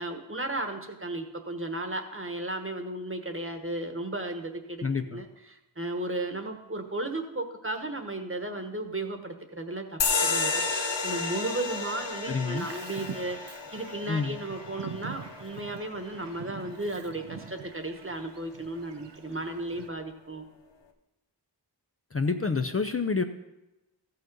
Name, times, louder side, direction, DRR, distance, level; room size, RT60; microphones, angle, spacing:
voice 1, 0.0-20.4, right 2 dB, 30° right, 5 dB, 1.2 m, -35 dB
voice 2, 4.8-5.2 12.3-12.7 14.1-14.4 22.1-23.2, left 4 dB, 35° left, 7 dB, 0.5 m, -28 dB
sound 1, 10.0-17.1, left 4 dB, 85° left, 0.8 m, -32 dB
Bird vocalization bird call bird song, 12.6-19.9, right 6 dB, 75° right, 0.7 m, -44 dB
14.0 x 5.7 x 5.3 m, 0.99 s
wide cardioid pair, 45°, 43 cm